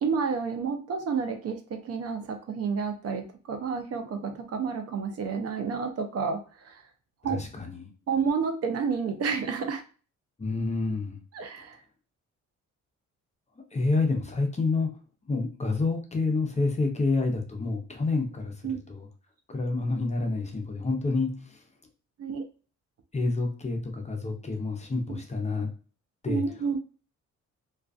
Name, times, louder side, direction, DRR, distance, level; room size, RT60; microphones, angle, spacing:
voice 1, 0.0-6.8 7.2-7.4 8.1-9.8 11.3-11.8 18.6-18.8 22.2-22.4 25.1-25.2 26.3-26.8, right 5 dB, 55° right, 5 dB, 0.5 m, -30 dB
voice 2, 7.2-7.9 10.4-11.2 13.7-14.9 15.3-19.1 19.5-21.6 23.1-25.7 26.2-26.4, left 3 dB, 25° left, 3 dB, 0.6 m, -28 dB
2.3 x 2.3 x 2.4 m, 0.37 s
cardioid pair, 90°, 30 cm